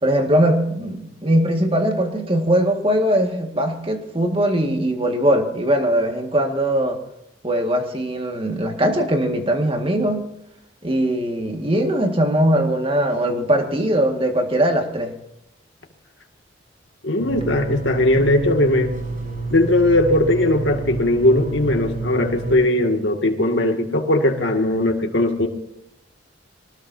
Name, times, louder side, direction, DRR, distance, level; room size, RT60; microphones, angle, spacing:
voice 1, 0.0-7.0 7.4-10.3 10.8-15.1, right 1 dB, 30° right, 4 dB, 1.9 m, -20 dB
voice 2, 17.0-18.9 19.5-25.5, left 1 dB, 65° left, 3 dB, 2.2 m, -19 dB
sound 1, 17.2-22.6, right 3 dB, 45° right, 7.1 m, -29 dB
24.5 x 19.0 x 2.8 m, 0.81 s
head